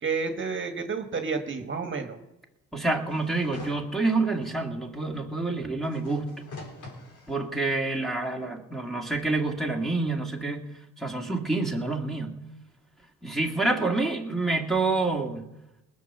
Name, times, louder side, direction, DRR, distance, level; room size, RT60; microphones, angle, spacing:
voice 1, 0.0-2.2, right 5 dB, 40° right, 6 dB, 1.4 m, -30 dB
voice 2, 2.7-6.3 7.3-10.7 11.0-12.3 13.2-15.4, right 3 dB, ahead, -1 dB, 1.9 m, -27 dB
sound 1, 3.1-3.8 4.4-4.5 5.8-7.3 8.0-8.1, left 2 dB, 80° left, 4.1 m, -44 dB
20.0 x 7.4 x 6.6 m, 0.95 s
cardioid pair, 90°, 30 cm